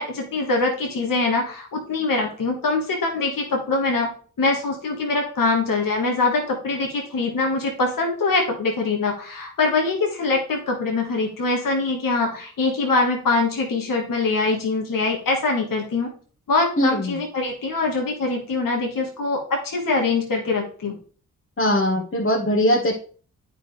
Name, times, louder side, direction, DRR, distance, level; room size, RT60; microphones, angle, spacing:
voice 1, 0.0-4.1 4.4-16.1 16.5-21.0, left 3 dB, 60° left, 1 dB, 1.6 m, -23 dB
voice 2, 16.8-17.1 21.6-22.9, left 1 dB, 35° left, -2 dB, 1.5 m, -20 dB
8.9 x 4.8 x 3.2 m, 0.43 s
supercardioid pair, 40°, 37 cm